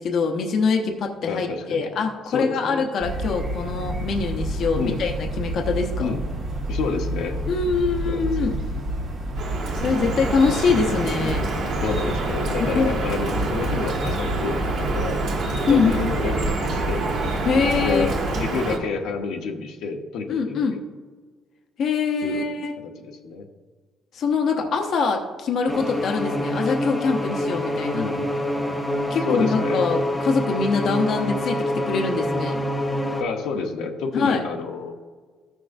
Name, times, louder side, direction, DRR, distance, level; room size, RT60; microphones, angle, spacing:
voice 1, 0.0-6.1 7.5-8.6 9.7-11.4 12.6-12.9 15.7-16.0 17.4-18.1 20.3-20.8 21.8-22.8 24.1-28.0 29.1-32.6 34.1-34.5, left 5 dB, 50° left, 2 dB, 0.8 m, -24 dB
voice 2, 1.3-1.9 2.3-2.8 4.8-5.0 6.0-6.2 6.7-7.4 8.0-8.5 11.2-11.4 11.8-15.2 15.7-17.1 17.8-20.8 22.2-22.4 23.0-23.5 27.9-28.2 29.3-30.0 33.2-34.9, left 5 dB, 85° left, 3 dB, 0.9 m, -29 dB
sound 1, 3.0-18.4, right 1 dB, 45° right, 1.5 m, -29 dB
Drip, 9.4-18.8, right 3 dB, 65° right, 1.6 m, -27 dB
sound 2, 25.7-33.2, left 1 dB, 5° left, 0.8 m, -26 dB
14.0 x 6.2 x 2.6 m, 1.5 s
cardioid pair, 165°, 0 cm